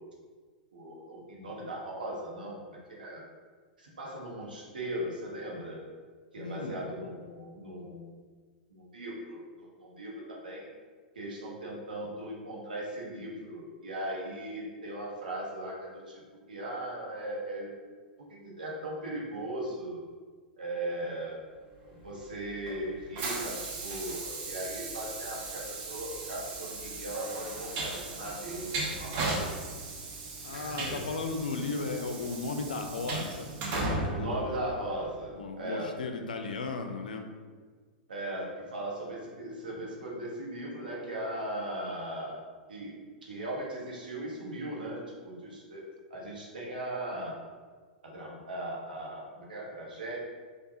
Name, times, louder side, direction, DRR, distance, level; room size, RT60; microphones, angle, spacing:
voice 1, 0.7-3.2 3.8-5.8 6.3-8.1 8.7-10.7 11.1-16.2 16.5-17.7 18.3-20.0 20.6-21.4 22.0-29.7 30.5-31.0 34.1-35.9 38.1-42.4 42.7-45.8 46.1-47.4 48.0-50.2, right 1 dB, 70° right, -3 dB, 0.9 m, -38 dB
voice 2, 6.4-6.8 30.4-34.4 35.3-37.2, left 4 dB, 70° left, 5 dB, 0.4 m, -35 dB
Train, 22.0-35.2, right 3 dB, 40° right, 0.7 m, -37 dB
4.5 x 2.3 x 2.7 m, 1.5 s
figure-of-eight pair, 95°, 5 cm